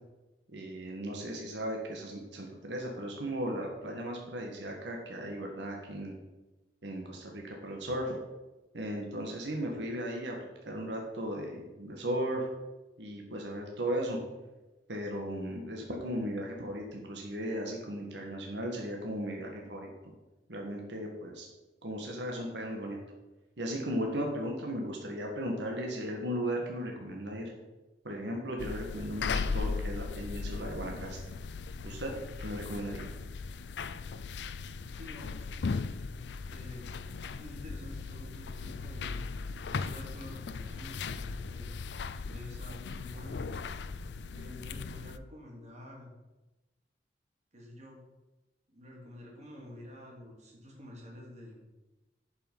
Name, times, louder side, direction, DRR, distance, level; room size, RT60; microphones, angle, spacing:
voice 1, 0.5-6.1 6.8-8.2 8.7-10.4 10.7-12.5 13.0-14.2 14.9-19.9 20.5-21.5 21.8-23.0 23.6-27.4 28.0-31.2 31.8-32.1 32.4-33.0, equal, 85° right, 1 dB, 1.7 m, -36 dB
sound 1, 28.6-45.2, left 4 dB, 75° left, 0.4 m, -38 dB
voice 2, 34.9-35.9 36.5-36.8 37.4-39.3 39.7-41.7 42.3-43.4 44.3-46.1 47.5-48.0 48.7-51.8, left 1 dB, 40° right, -2 dB, 2.7 m, -49 dB
11.0 x 5.7 x 5.5 m, 1.1 s
head